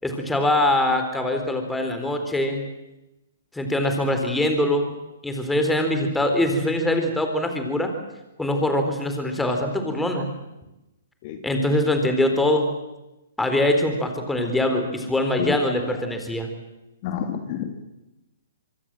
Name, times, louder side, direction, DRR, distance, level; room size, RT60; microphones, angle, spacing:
voice 1, 0.0-2.6 3.5-4.9 5.2-7.9 8.4-10.3 11.4-12.7 13.4-16.5, left 1 dB, 5° left, 5 dB, 4.0 m, -23 dB
voice 2, 15.4-16.0 17.0-17.8, left 8 dB, 40° left, 6 dB, 2.8 m, -30 dB
24.5 x 23.0 x 7.7 m, 0.98 s
hypercardioid pair, 140°, 0 cm